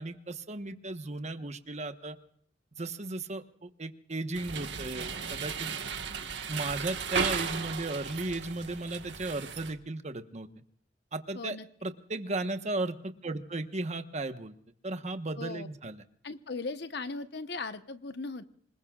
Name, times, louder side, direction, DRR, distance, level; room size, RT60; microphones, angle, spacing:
voice 1, 0.0-2.2 2.7-5.7 6.5-10.5 11.1-11.6 11.8-14.5 14.8-16.0, right 2 dB, 40° right, 8 dB, 1.2 m, -35 dB
sound 1, 4.3-9.7, right 6 dB, 90° right, 1.5 m, -35 dB
voice 2, 11.3-11.7 15.4-15.7 16.2-18.4, left 3 dB, 70° left, 10 dB, 1.1 m, -38 dB
27.0 x 20.5 x 2.4 m, 0.64 s
head